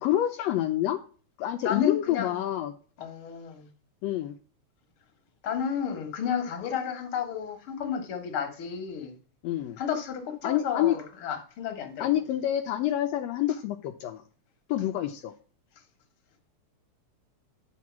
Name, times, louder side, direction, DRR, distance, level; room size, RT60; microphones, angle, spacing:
voice 1, 0.0-1.0 1.4-2.7 4.0-4.4 9.4-9.8 10.4-11.0 12.0-14.2 14.7-15.3, left 12 dB, 80° left, 5 dB, 1.5 m, -27 dB
voice 2, 1.6-2.4 3.0-3.7 5.4-9.2 9.8-12.1, left 8 dB, 50° left, 6 dB, 2.0 m, -32 dB
10.0 x 4.6 x 7.2 m, 0.41 s
omnidirectional pair, 3.5 m